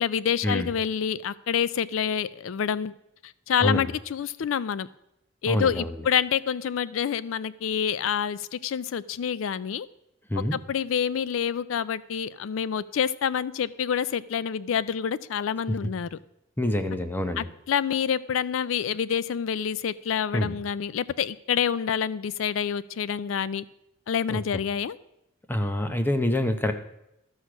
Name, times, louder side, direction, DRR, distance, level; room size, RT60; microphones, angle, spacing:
voice 1, 0.0-2.9 3.2-4.9 5.4-9.9 10.5-16.2 17.4-23.6 24.1-25.0, left 8 dB, 90° left, 18 dB, 0.4 m, -27 dB
voice 2, 3.6-3.9 5.5-6.0 10.3-10.6 15.7-15.8 16.6-17.5 20.3-20.6 24.3-24.4 25.5-26.7, left 1 dB, 10° left, 8 dB, 0.7 m, -26 dB
13.5 x 6.4 x 6.0 m, 0.83 s
head